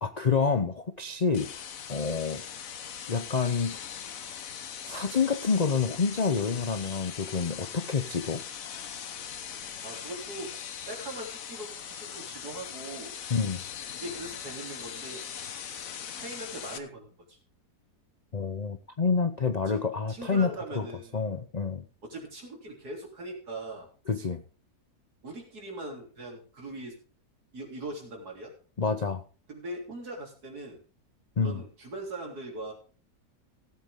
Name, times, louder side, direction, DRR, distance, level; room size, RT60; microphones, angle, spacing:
voice 1, 0.0-1.5 1.9-2.4 3.1-3.8 4.8-8.4 13.3-13.6 18.3-20.9 21.1-21.8 24.1-24.4 28.8-29.2 31.4-31.6, left 5 dB, 45° left, 9 dB, 0.5 m, -28 dB
sound 1, 1.3-16.8, left 8 dB, 60° left, 1.3 m, -40 dB
voice 2, 9.8-10.5 10.9-13.1 13.9-15.3 16.2-17.4 19.7-19.8 20.1-21.3 22.0-23.9 25.2-27.0 27.5-28.5 29.5-30.8 31.4-32.7, right 1 dB, 70° right, 1 dB, 4.0 m, -40 dB
16.5 x 8.1 x 3.7 m, 0.37 s
omnidirectional pair, 1.7 m